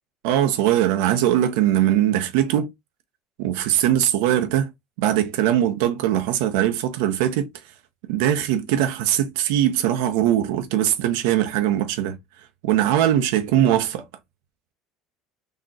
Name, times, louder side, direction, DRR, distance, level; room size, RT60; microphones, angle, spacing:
voice 1, 0.2-2.7 3.4-4.7 5.0-7.5 8.0-12.2 12.6-14.0, right 11 dB, 85° right, 0.7 m, -21 dB
3.9 x 2.9 x 2.3 m
cardioid pair, 140°, 0 cm